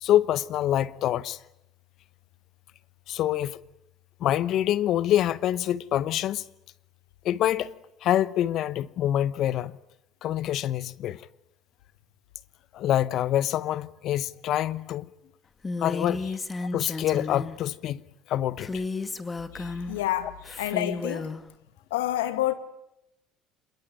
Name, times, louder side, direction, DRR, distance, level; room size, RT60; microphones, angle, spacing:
voice 1, 0.0-1.4 3.1-3.6 4.2-6.4 7.2-7.7 8.0-9.7 10.2-11.2 12.7-15.1 15.8-16.2 16.7-18.0 18.3-18.8, left 12 dB, 60° left, 1.0 m, -26 dB
Female speech woman speaking, 15.6-17.6 18.6-20.0 20.4-21.4, left 3 dB, 20° left, 2.0 m, -33 dB
voice 2, 19.5-21.3 21.9-22.5, left 14 dB, 85° left, 1.9 m, -29 dB
27.0 x 22.0 x 9.1 m
hypercardioid pair, 75°, 0 cm